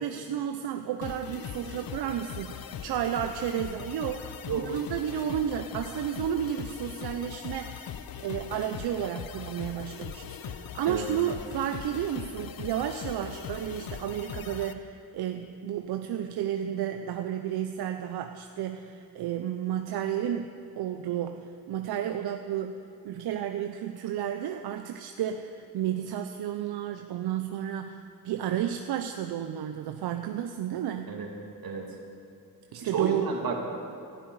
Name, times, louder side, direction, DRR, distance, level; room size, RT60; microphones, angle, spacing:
voice 1, 0.0-7.9 8.2-31.2 32.7-33.3, right 10 dB, 90° right, 6 dB, 0.7 m, -32 dB
sound 1, 1.0-14.7, left 9 dB, 70° left, 0.8 m, -40 dB
voice 2, 31.6-32.0 32.8-33.7, right 5 dB, 70° right, 0 dB, 2.6 m, -31 dB
18.0 x 12.0 x 4.8 m, 2.7 s
cardioid pair, 80°, 37 cm